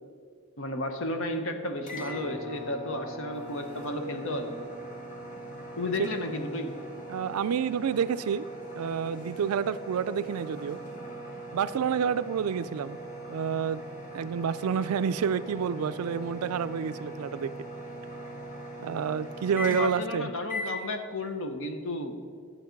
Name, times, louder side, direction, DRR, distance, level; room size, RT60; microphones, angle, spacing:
voice 1, 0.6-4.6 5.8-6.7 19.7-22.2, left 2 dB, 60° left, 7 dB, 1.0 m, -33 dB
sound 1, 1.8-20.1 20.5-20.8, right 1 dB, 35° left, 1.7 m, -40 dB
voice 2, 7.1-8.5 8.7-10.8 11.5-13.0 13.3-13.8 14.1-17.5 18.8-20.3, right 7 dB, 80° right, 15 dB, 0.4 m, -29 dB
12.0 x 7.4 x 5.2 m, 2.1 s
head